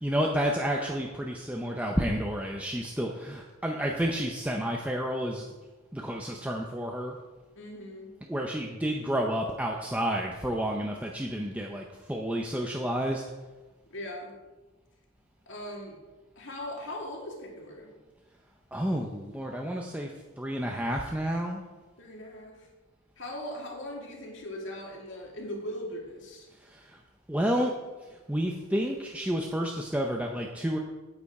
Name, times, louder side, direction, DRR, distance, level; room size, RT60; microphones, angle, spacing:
voice 1, 0.0-5.5 5.9-7.2 8.3-13.2 18.7-20.1 20.4-21.6 26.6-27.0 27.3-27.7 28.3-30.8, equal, 5° right, 0 dB, 0.6 m, -30 dB
voice 2, 7.6-8.1 13.9-14.4 15.5-16.0 16.4-17.9 22.0-22.7 23.2-26.5, left 1 dB, 60° left, -1 dB, 2.3 m, -39 dB
8.9 x 8.5 x 4.8 m, 1.2 s
head